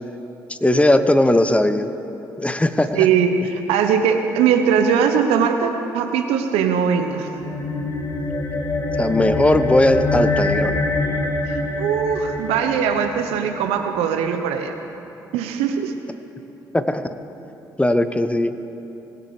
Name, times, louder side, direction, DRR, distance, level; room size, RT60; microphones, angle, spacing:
voice 1, 0.5-1.9 2.4-3.1 9.0-10.7 16.7-17.0 17.8-18.5, left 1 dB, 10° left, 10 dB, 0.8 m, -18 dB
voice 2, 2.9-7.3 11.5-14.7 15.3-15.9, right 7 dB, 70° right, 6 dB, 0.8 m, -20 dB
sound 1, 7.2-13.9, left 2 dB, 30° left, 2.1 m, -25 dB
20.0 x 9.7 x 3.3 m, 3.0 s
figure-of-eight pair, 40°, 11 cm